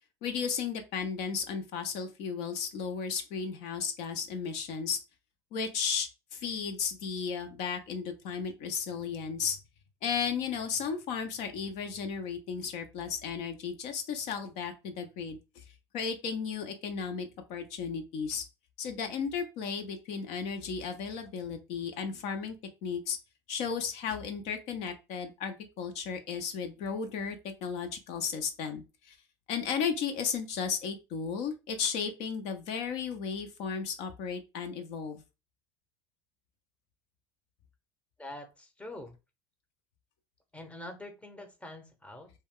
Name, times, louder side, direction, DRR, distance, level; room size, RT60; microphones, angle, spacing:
voice 1, 0.2-5.0 5.5-9.6 10.0-15.6 15.9-18.4 18.8-22.6 22.8-23.2 23.5-29.2 29.5-35.2, left 6 dB, 60° left, 0.5 m, -34 dB
voice 2, 38.2-39.2 40.5-42.3, left 1 dB, 10° left, 0.7 m, -45 dB
2.2 x 2.1 x 3.5 m
hypercardioid pair, 85°, 13 cm